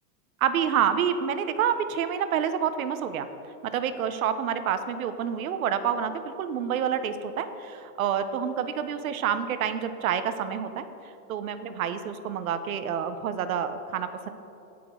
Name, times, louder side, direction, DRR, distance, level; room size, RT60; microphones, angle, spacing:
voice 1, 0.4-3.3 3.6-10.8 11.3-14.3, right 8 dB, 60° right, 10 dB, 0.9 m, -28 dB
18.0 x 6.1 x 3.7 m, 2.9 s
supercardioid pair, 170°, 46 cm